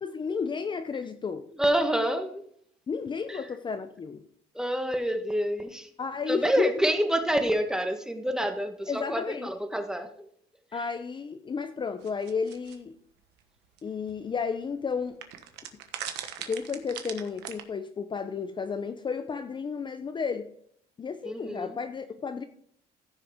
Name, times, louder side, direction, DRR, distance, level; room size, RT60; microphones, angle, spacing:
voice 1, 0.0-1.5 2.9-4.2 6.0-6.7 8.9-9.5 10.7-13.0 13.8-15.2 16.5-20.5 21.0-22.4, left 5 dB, 30° left, 0.6 m, -32 dB
voice 2, 1.6-2.4 3.3-3.4 4.5-5.9 6.3-10.3 21.2-21.7, equal, 5° right, 1.4 m, -27 dB
sound 1, 12.0-12.8 13.8-13.9 14.1-14.2 15.2-17.6, right 10 dB, 90° right, 1.2 m, -38 dB
15.0 x 6.5 x 3.6 m
cardioid pair, 110°, 17 cm